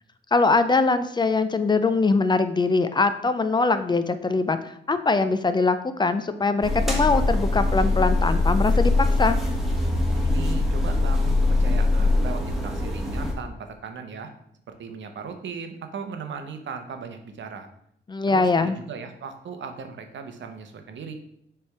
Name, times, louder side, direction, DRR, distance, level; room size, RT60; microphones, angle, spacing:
voice 1, 0.3-8.9 9.2-9.4 18.1-18.8, left 3 dB, 25° left, 11 dB, 0.4 m, -22 dB
sound 1, 6.6-13.3, left 2 dB, ahead, 1.2 m, -22 dB
voice 2, 10.2-14.3 14.8-17.7 18.3-21.1, right 6 dB, 80° right, 6 dB, 0.8 m, -37 dB
6.8 x 3.4 x 4.6 m, 0.70 s
wide cardioid pair, 135°, 19 cm